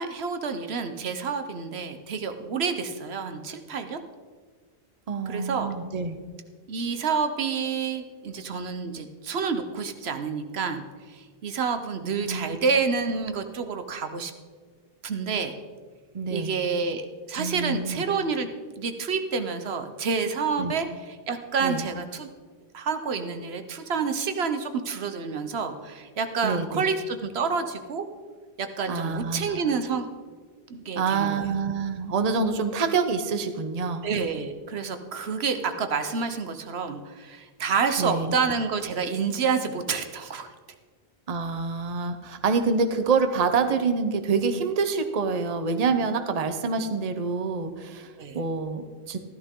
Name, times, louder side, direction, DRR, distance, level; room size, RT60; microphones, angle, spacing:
voice 1, 0.0-4.0 5.3-5.7 6.7-14.3 15.0-15.5 16.3-18.5 18.8-22.3 22.7-28.1 28.6-30.1 30.7-31.4 34.0-40.5 48.2-48.4, right 5 dB, 80° right, 8 dB, 1.1 m, -28 dB
voice 2, 5.1-6.2 12.2-12.6 16.1-16.6 17.4-18.0 20.6-20.7 21.6-21.8 26.4-26.8 28.9-29.7 30.9-34.0 38.0-38.4 41.3-49.2, right 4 dB, 40° right, 8 dB, 0.8 m, -27 dB
13.5 x 13.0 x 3.7 m, 1.5 s
omnidirectional pair, 1.1 m